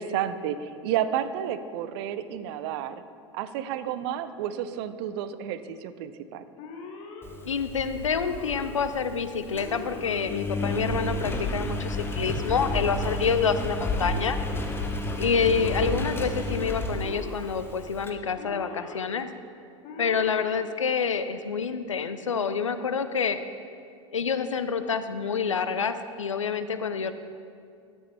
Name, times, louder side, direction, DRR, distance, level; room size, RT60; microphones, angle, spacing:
voice 1, 0.0-3.0 3.3-6.4, right 10 dB, 55° right, 13 dB, 0.5 m, -31 dB
Alarm, 6.6-7.2 8.0-8.7 9.5-10.2 11.0-11.6 12.5-13.1 13.9-14.6 15.4-16.1 16.9-17.5 18.4-19.0 19.8-20.5, left 4 dB, 45° left, 1.3 m, -41 dB
Engine, 7.2-18.1, left 2 dB, 15° left, 0.9 m, -32 dB
voice 2, 7.4-14.4 15.2-19.3 20.0-23.4 24.1-27.1, left 6 dB, 85° left, 10 dB, 0.4 m, -27 dB
12.5 x 6.1 x 3.4 m, 2.3 s
figure-of-eight pair, 80°, 16 cm